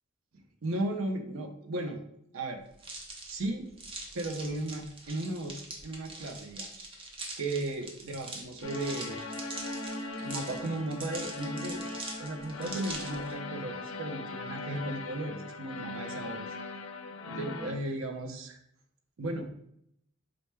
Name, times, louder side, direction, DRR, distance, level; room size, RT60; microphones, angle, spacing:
voice 1, 0.3-2.0 2.3-2.6 3.3-3.7 4.1-6.8 7.4-9.2 10.2-11.8 12.2-16.5 17.3-18.6 19.2-19.5, right 1 dB, 75° right, 4 dB, 0.6 m, -35 dB
sound 1, 2.8-13.3, right 2 dB, 25° right, 0.5 m, -43 dB
sound 2, 8.6-17.7, left 2 dB, 70° left, 0.4 m, -39 dB
4.4 x 2.0 x 3.3 m, 0.71 s
head